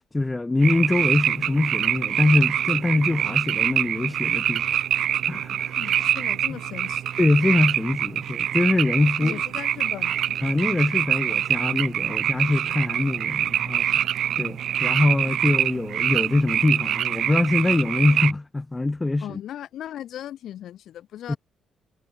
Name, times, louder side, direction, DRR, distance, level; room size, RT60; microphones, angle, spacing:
voice 1, 0.1-4.8 5.3-5.7 7.2-9.4 10.4-14.1 14.4-19.4 21.3-21.4, left 2 dB, 15° left, 1.4 m, -23 dB
sound 1, 0.6-18.3, right 10 dB, 70° right, 0.6 m, -25 dB
voice 2, 5.8-7.1 9.2-10.4 19.2-21.4, left 11 dB, 75° left, 3.6 m, -37 dB
cardioid pair, 90°, 0 cm